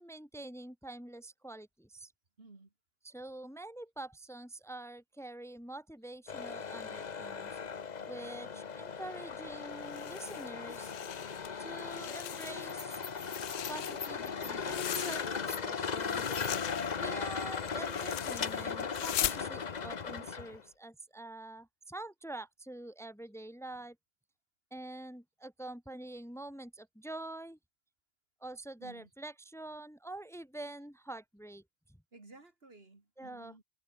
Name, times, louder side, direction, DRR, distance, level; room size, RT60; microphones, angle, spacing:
voice 1, 0.0-2.1 3.0-7.6 8.1-10.9 11.6-13.2 13.7-16.3 17.0-24.0 24.7-27.6 28.4-31.6 33.2-33.5, right 2 dB, ahead, 2.0 m, -46 dB
voice 2, 2.4-2.7 28.8-29.1 32.1-33.6, right 3 dB, 60° right, 3.1 m, -55 dB
sound 1, 6.3-20.6, left 6 dB, 40° left, 1.0 m, -38 dB
sound 2, 9.8-11.5 11.8-12.8 13.1-15.6 15.9-19.4, left 13 dB, 75° left, 0.8 m, -40 dB
omnidirectional pair, 1.2 m